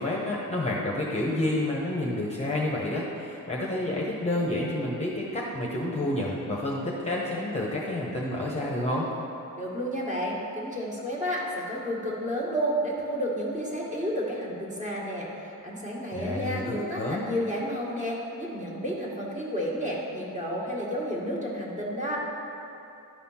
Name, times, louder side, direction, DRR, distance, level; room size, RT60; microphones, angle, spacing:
voice 1, 0.0-9.1 16.1-17.3, left 1 dB, 20° left, -4 dB, 1.1 m, -29 dB
voice 2, 9.6-22.2, equal, 20° right, -5 dB, 1.9 m, -31 dB
11.5 x 4.2 x 5.7 m, 3.0 s
cardioid pair, 110°, 35 cm